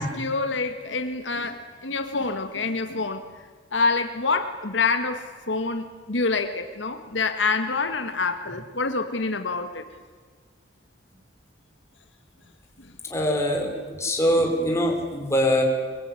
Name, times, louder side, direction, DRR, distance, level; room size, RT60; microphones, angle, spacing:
voice 1, 0.0-3.2 3.7-9.8, left 3 dB, 80° left, 7 dB, 1.8 m, -26 dB
voice 2, 13.1-15.6, equal, 15° left, 1 dB, 5.4 m, -23 dB
23.5 x 22.5 x 9.8 m, 1.5 s
head